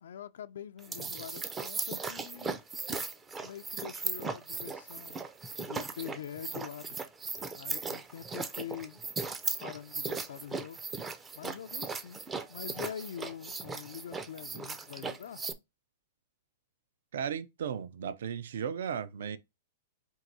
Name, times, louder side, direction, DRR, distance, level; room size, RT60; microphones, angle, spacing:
voice 1, 0.0-2.6 3.4-5.4 5.6-7.0 7.5-9.0 9.6-10.8 11.3-12.2 12.5-15.4, left 9 dB, 80° left, 0.4 m, -44 dB
sound 1, 0.8-15.5, right 4 dB, 15° right, 0.4 m, -38 dB
voice 2, 17.1-19.4, right 7 dB, 75° right, 0.6 m, -35 dB
4.6 x 2.6 x 3.9 m
supercardioid pair, 155°, 0 cm